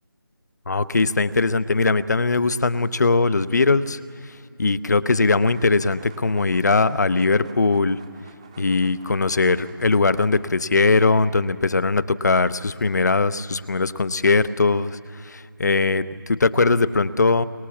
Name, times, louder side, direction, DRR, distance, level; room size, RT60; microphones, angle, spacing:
voice 1, 0.7-8.0 8.6-17.4, left 3 dB, 50° left, 15 dB, 0.8 m, -20 dB
sound 1, 5.4-10.5, right 5 dB, 15° right, 1.1 m, -50 dB
25.0 x 24.0 x 7.2 m, 2.4 s
figure-of-eight pair, 170°, 12 cm